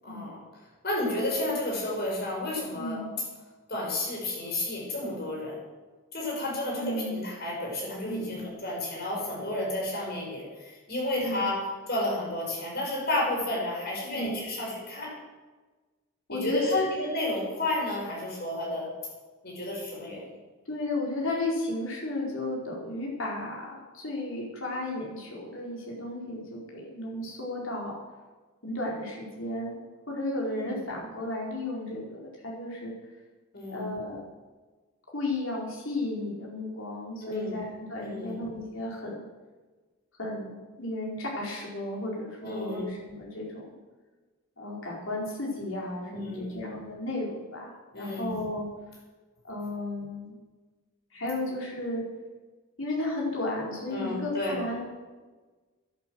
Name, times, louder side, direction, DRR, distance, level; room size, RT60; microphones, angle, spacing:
voice 1, 0.0-0.4 0.8-3.0 3.7-5.6 6.1-15.2 16.3-18.9 19.4-20.2 30.4-30.8 33.5-33.9 37.2-37.5 38.0-38.4 42.4-42.9 46.1-46.5 47.9-48.3 53.9-54.5, left 1 dB, 50° left, -3 dB, 5.7 m, -32 dB
voice 2, 2.7-3.1 6.7-7.2 8.0-8.4 11.2-11.5 14.1-14.4 16.3-16.9 20.7-28.0 28.6-29.8 30.1-32.9 33.7-34.2 35.1-39.2 40.2-43.8 44.6-48.7 49.5-50.4 51.1-52.0 52.8-54.8, left 2 dB, 65° left, -3 dB, 4.5 m, -33 dB
12.0 x 10.5 x 8.0 m, 1.3 s
head